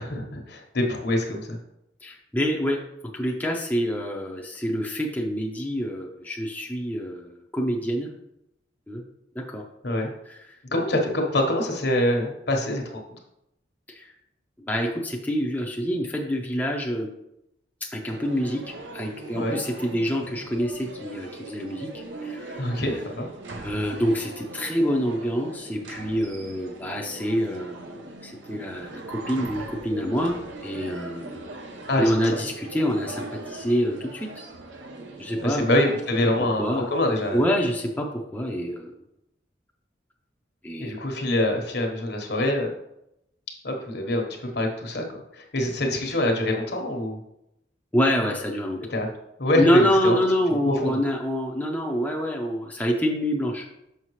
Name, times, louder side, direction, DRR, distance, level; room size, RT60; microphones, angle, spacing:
voice 1, 0.0-1.6 9.8-10.1 10.7-13.0 19.3-19.6 22.6-23.3 31.9-32.1 35.4-37.4 40.8-42.7 43.6-45.0 45.3-47.2 48.9-49.1 49.4-50.2 50.6-50.9, left 1 dB, 60° left, 2 dB, 1.2 m, -25 dB
voice 2, 2.0-2.8 3.1-8.1 8.9-9.0 9.3-9.6 10.3-10.4 13.9-14.1 14.6-17.1 17.9-18.6 18.9-21.9 22.2-22.8 23.6-31.4 32.0-34.3 35.2-35.7 36.6-36.9 37.3-38.9 40.6-41.0 47.9-48.8 49.5-53.7, equal, 10° left, -1 dB, 0.6 m, -26 dB
sound 1, 18.0-37.7, right 2 dB, 85° right, 0.8 m, -40 dB
5.8 x 5.7 x 3.1 m, 0.82 s
head